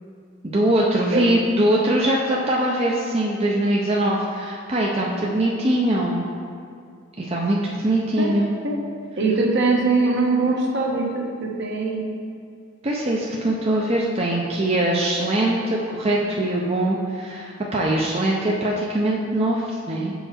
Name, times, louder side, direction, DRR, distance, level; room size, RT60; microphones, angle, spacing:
voice 1, 0.4-6.3 7.2-8.5 12.8-20.1, right 1 dB, 30° right, -3 dB, 0.6 m, -22 dB
voice 2, 8.2-8.8 9.2-12.0, right 3 dB, 60° right, -1 dB, 1.1 m, -22 dB
7.0 x 5.6 x 4.3 m, 2.3 s
head